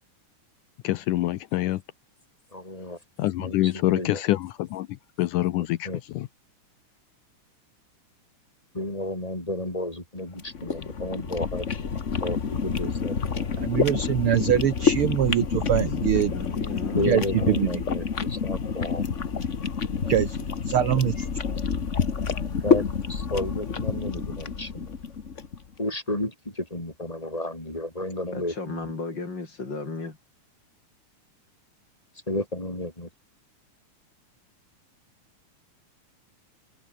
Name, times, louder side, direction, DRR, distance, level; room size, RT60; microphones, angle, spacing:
voice 1, 0.8-1.8 3.2-4.9 5.2-5.9 6.1-6.3, left 16 dB, 75° left, 2.3 m, -25 dB
voice 2, 2.5-3.0 3.4-4.2 5.6-6.0 8.7-11.7 12.2-13.6 16.9-19.1 22.6-24.9 25.8-28.9 32.3-33.1, left 1 dB, 10° left, 5.6 m, -32 dB
sound 1, 10.3-25.6, left 6 dB, 50° left, 0.8 m, -28 dB
voice 3, 13.6-16.3 17.0-17.7 20.1-21.3, right 11 dB, 70° right, 1.3 m, -24 dB
voice 4, 16.1-17.1 21.2-21.3 28.3-30.2, left 3 dB, 35° left, 4.2 m, -35 dB
omnidirectional pair, 3.7 m